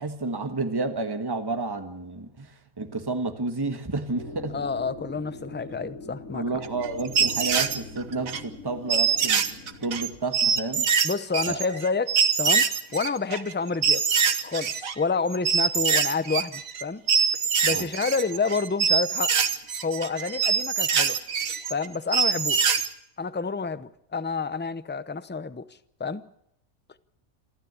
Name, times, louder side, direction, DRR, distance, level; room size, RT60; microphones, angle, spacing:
voice 1, 0.0-4.6 6.3-9.5 9.8-10.9 11.5-11.6 17.7-17.9, right 3 dB, 15° right, 1.5 m, -31 dB
sound 1, 4.1-10.2, left 3 dB, 65° left, 4.3 m, -42 dB
voice 2, 4.5-6.4 11.0-12.7 12.9-14.0 14.4-17.0 17.6-19.3 19.8-21.2 21.7-22.7 23.2-25.7 26.0-26.3, left 4 dB, 15° left, 0.4 m, -29 dB
sound 2, 6.6-8.4 8.9-14.9 15.3-16.8 17.1-22.9, right 6 dB, 70° right, 1.7 m, -24 dB
27.5 x 13.0 x 8.2 m
omnidirectional pair, 1.5 m